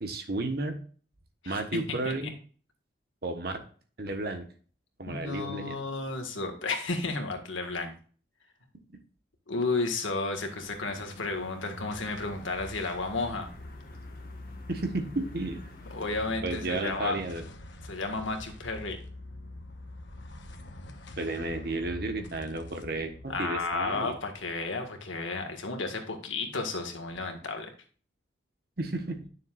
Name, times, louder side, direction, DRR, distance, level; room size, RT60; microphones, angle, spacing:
voice 1, 0.0-0.8 1.4-2.3 3.2-3.6 4.0-4.5 5.0-5.7 14.7-15.6 16.4-17.4 21.2-24.1 28.8-29.2, right 2 dB, 55° right, 6 dB, 1.3 m, -32 dB
voice 2, 1.4-2.3 5.1-7.9 9.5-13.5 15.9-17.2 17.8-19.0 23.3-27.7, left 3 dB, 85° left, 5 dB, 1.8 m, -32 dB
sound 1, 10.3-16.4, left 1 dB, 50° left, 1.5 m, -52 dB
sound 2, 11.0-25.6, left 1 dB, 70° left, 1.1 m, -45 dB
10.0 x 6.6 x 2.5 m, 0.41 s
head